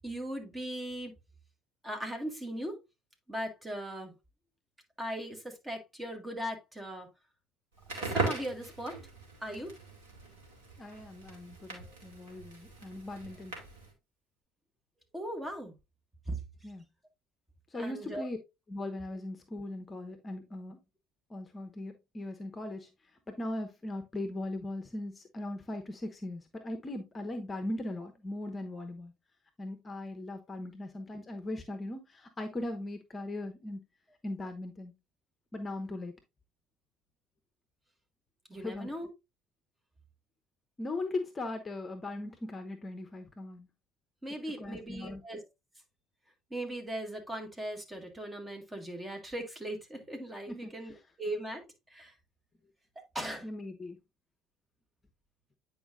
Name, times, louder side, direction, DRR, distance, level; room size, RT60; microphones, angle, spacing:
voice 1, 0.0-1.1 1.8-2.8 3.3-4.1 5.0-7.1 7.9-9.0 9.4-9.7 11.7-11.8 15.1-15.8 16.3-16.4 17.7-18.3 38.5-39.1 44.2-45.5 46.5-51.6 51.9-52.1 53.0-53.5, right 1 dB, 15° right, 2.0 m, -39 dB
Crackle, 7.8-13.9, right 3 dB, 75° right, 2.3 m, -39 dB
voice 2, 10.8-13.6 16.6-16.8 17.7-18.4 18.7-20.8 21.3-22.9 23.3-29.1 29.6-33.8 34.2-34.9 35.5-36.1 38.5-38.9 40.8-43.7 44.6-45.2 50.5-51.0 53.4-54.0, left 2 dB, 25° left, 1.0 m, -39 dB
9.1 x 5.0 x 2.5 m
figure-of-eight pair, 60°, 0 cm